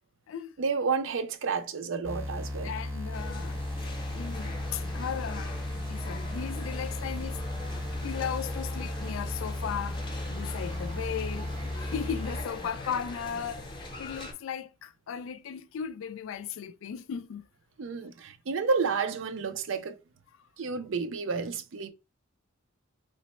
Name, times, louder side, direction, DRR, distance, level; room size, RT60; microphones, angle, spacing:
voice 1, 0.6-2.7 17.8-20.0 20.6-21.9, right 5 dB, 65° right, 0.5 m, -30 dB
sound 1, 2.0-12.4, left 1 dB, 90° right, 2.0 m, -35 dB
voice 2, 2.6-3.6 4.1-5.5 5.9-7.4 8.0-10.0 10.3-13.7 14.0-17.4, left 8 dB, 70° left, 0.3 m, -36 dB
sound 2, 3.1-14.3, left 2 dB, 25° left, 0.7 m, -42 dB
3.1 x 2.1 x 4.1 m
head